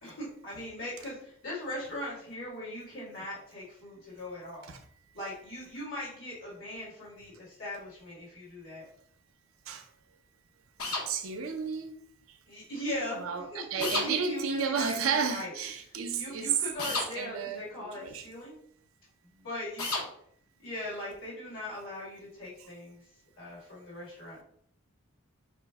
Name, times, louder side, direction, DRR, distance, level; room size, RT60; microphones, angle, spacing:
voice 1, 0.0-4.7 5.1-8.8 12.5-15.5 16.2-18.6 19.2-19.9 20.6-23.0 23.4-24.4, left 1 dB, 60° left, 1.6 m, -39 dB
sound 1, 10.8-11.1 13.8-14.1 16.8-17.1 19.8-20.1, left 3 dB, 85° left, 0.8 m, -31 dB
voice 2, 11.1-12.0 12.3-12.4 13.1-16.6 16.9-18.3, right 6 dB, 70° right, 0.5 m, -32 dB
5.1 x 2.0 x 3.4 m
head